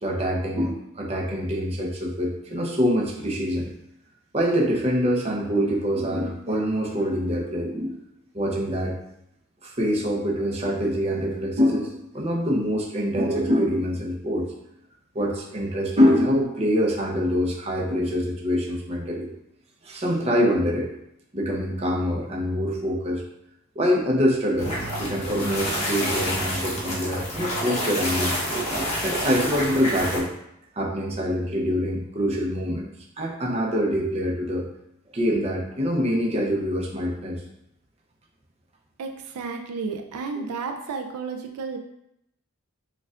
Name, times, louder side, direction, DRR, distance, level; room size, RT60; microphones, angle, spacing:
voice 1, 0.0-3.7 4.3-8.0 8.3-8.9 9.6-14.5 15.1-19.3 19.8-20.9 21.3-23.2 23.8-28.4 29.0-30.3 30.8-32.9 33.2-34.6 35.1-37.4, equal, 30° right, -1 dB, 0.6 m, -25 dB
sound 1, 24.6-30.2, equal, 30° left, 1.0 m, -28 dB
voice 2, 39.0-41.8, right 4 dB, 80° right, 5 dB, 0.4 m, -32 dB
6.4 x 2.3 x 2.4 m, 0.80 s
head